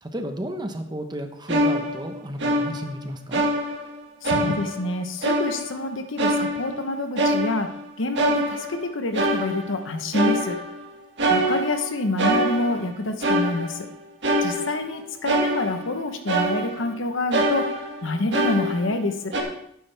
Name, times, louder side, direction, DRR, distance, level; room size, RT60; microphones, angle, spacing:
voice 1, 0.0-3.4, right 1 dB, 20° right, 6 dB, 1.0 m, -32 dB
sound 1, 1.5-3.0 3.3-4.0 4.2-4.9 5.2-5.8 6.2-7.8 8.2-8.9 9.1-9.8 10.1-10.8 11.2-12.9 13.2-13.9 14.2-15.0 15.3-16.0 16.3-17.0 17.3-19.1 19.3-19.4, right 1 dB, 60° right, 1.9 m, -25 dB
voice 2, 4.2-7.7 8.0-10.5 11.3-13.8 14.4-17.6 18.0-19.3, left 2 dB, 75° left, 7 dB, 1.0 m, -27 dB
12.0 x 9.4 x 3.4 m, 0.69 s
head